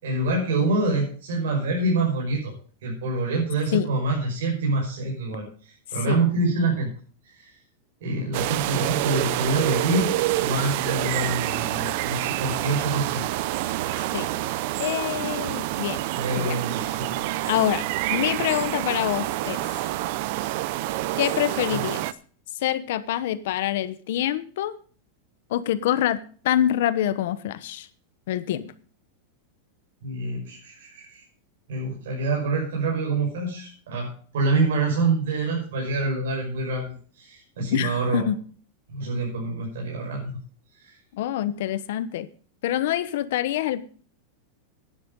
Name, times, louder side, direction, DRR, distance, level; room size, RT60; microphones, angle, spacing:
voice 1, 0.0-2.5 2.8-6.9 7.2-7.5 8.0-13.2 14.3-14.4 16.1-16.9 21.7-21.8 30.0-31.2 31.7-38.3 38.9-40.4 40.8-40.9, right 2 dB, 75° right, -2 dB, 5.7 m, -26 dB
sound 1, 8.3-22.1, right 16 dB, 45° right, 0.5 m, -27 dB
voice 2, 14.8-16.0 16.4-16.6 17.5-19.6 21.2-22.1 22.6-24.8 25.5-27.9 28.3-28.7 37.7-38.4 41.1-42.3 42.6-43.8, left 12 dB, 60° left, 14 dB, 1.0 m, -26 dB
11.5 x 10.0 x 5.4 m, 0.43 s
supercardioid pair, 175°, 0 cm